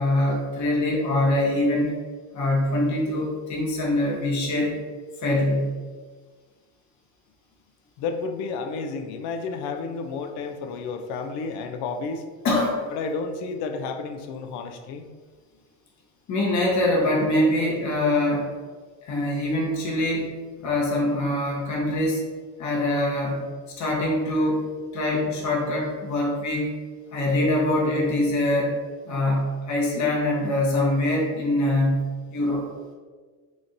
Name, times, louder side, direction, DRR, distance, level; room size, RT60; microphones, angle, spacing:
voice 1, 0.0-1.9 2.3-4.8 5.2-5.7 12.4-12.8 16.3-18.5 19.0-20.3 20.6-22.2 22.6-23.4 23.8-26.7 27.1-28.8 29.1-32.7, left 1 dB, 45° left, -3 dB, 1.0 m, -24 dB
voice 2, 8.0-12.2 12.9-15.1, left 4 dB, 70° left, 6 dB, 0.5 m, -31 dB
3.1 x 2.6 x 3.8 m, 1.5 s
cardioid pair, 105°, 42 cm